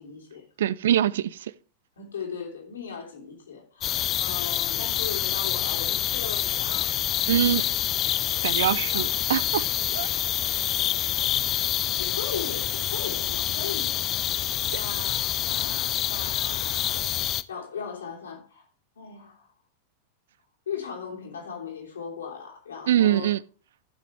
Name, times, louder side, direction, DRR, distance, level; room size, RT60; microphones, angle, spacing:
voice 1, 0.0-0.4 2.0-6.9 8.9-9.0 10.8-10.9 12.0-14.0 14.7-17.1 17.5-18.6 19.0-19.5 20.7-23.3, left 6 dB, 70° left, 3.1 m, -38 dB
voice 2, 0.6-1.5 7.3-7.6 8.4-9.7 9.9-10.1 14.7-14.8 22.9-23.4, right 11 dB, 60° right, 0.4 m, -23 dB
sound 1, 3.8-17.4, left 12 dB, 30° left, 0.5 m, -27 dB
15.0 x 5.9 x 3.2 m
figure-of-eight pair, 90°, 0 cm